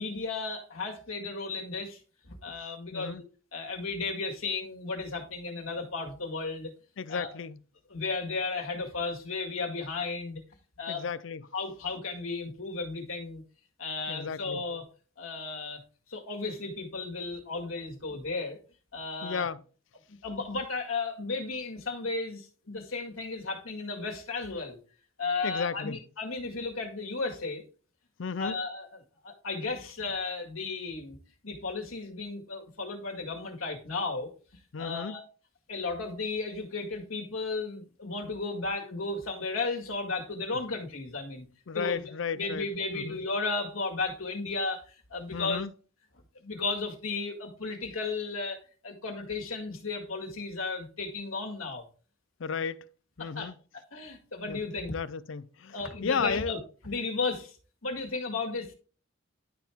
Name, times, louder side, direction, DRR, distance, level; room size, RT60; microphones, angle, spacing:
voice 1, 0.0-2.0 2.3-3.2 3.5-6.7 7.1-7.3 7.9-10.4 10.8-11.1 11.5-13.4 13.8-14.8 15.2-15.8 16.1-18.6 18.9-19.4 20.2-24.8 25.2-27.6 28.4-28.9 29.2-31.2 31.4-34.3 34.8-35.2 35.7-41.5 41.7-45.6 46.4-51.8 53.2-54.9 55.7-56.6 56.8-57.6 57.8-58.7, left 3 dB, 90° left, 1.9 m, -34 dB
voice 2, 2.9-3.2 7.0-7.6 10.9-11.5 14.1-14.6 19.2-19.6 25.4-26.0 28.2-28.6 34.7-35.2 41.7-42.7 42.9-43.2 45.3-45.7 52.4-52.9 53.2-53.5 54.5-54.6 54.9-56.5, left 6 dB, 70° left, 0.5 m, -34 dB
11.0 x 4.5 x 3.5 m
head